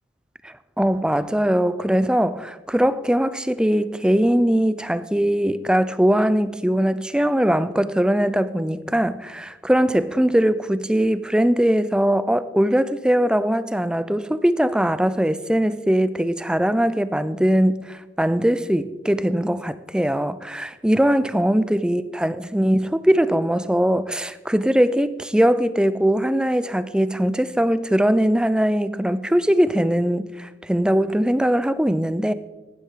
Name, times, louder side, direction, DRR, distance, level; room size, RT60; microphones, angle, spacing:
voice 1, 0.4-32.3, equal, 5° right, 0.4 m, -21 dB
15.5 x 10.5 x 3.7 m
head